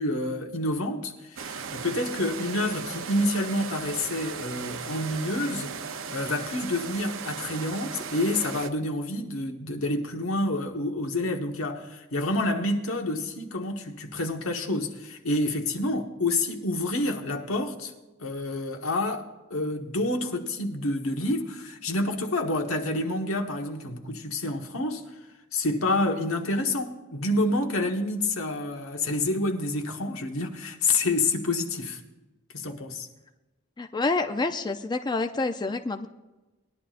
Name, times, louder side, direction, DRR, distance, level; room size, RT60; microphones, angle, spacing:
voice 1, 0.0-17.9 18.2-25.0 25.5-32.0 32.5-33.1, left 2 dB, 85° left, 1.4 m, -28 dB
sound 1, 1.4-8.7, right 6 dB, 70° right, 0.7 m, -37 dB
voice 2, 33.8-36.1, left 3 dB, 20° left, 0.5 m, -28 dB
20.0 x 11.0 x 2.5 m
head